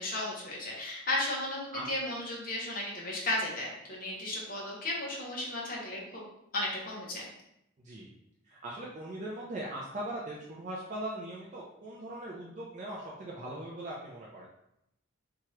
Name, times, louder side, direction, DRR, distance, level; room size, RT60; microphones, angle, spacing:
voice 1, 0.0-6.2 6.5-7.3, left 1 dB, 40° left, -4 dB, 0.8 m, -34 dB
voice 2, 8.4-14.5, right 1 dB, 35° right, -5 dB, 0.4 m, -40 dB
2.8 x 2.3 x 3.1 m, 0.80 s
head